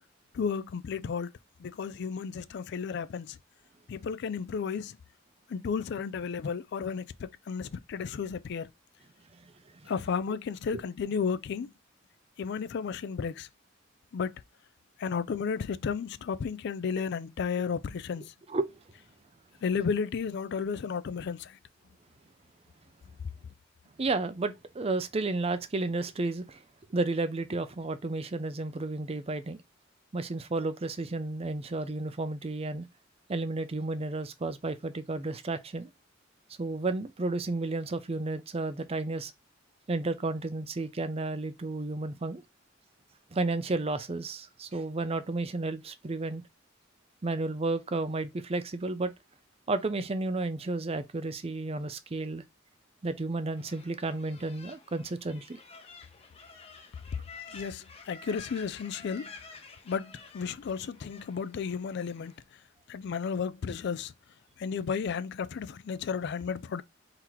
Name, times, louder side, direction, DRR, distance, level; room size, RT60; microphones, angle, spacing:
voice 1, 0.3-1.3 1.6-3.4 3.9-5.0 5.5-8.7 9.9-11.7 12.4-13.5 14.1-14.4 15.0-18.3 19.6-21.6 57.5-59.3 59.9-62.3 62.9-64.1 64.6-66.8, left 6 dB, 60° left, 0.3 m, -33 dB
voice 2, 24.0-26.6 26.9-29.6 30.1-32.9 33.3-35.9 36.6-39.3 39.9-42.4 43.3-46.4 47.2-49.1 49.7-52.4 53.0-55.6, right 2 dB, 30° right, 0.5 m, -32 dB
sound 1, 53.6-62.4, left 4 dB, 30° left, 0.8 m, -50 dB
3.9 x 2.9 x 4.5 m
head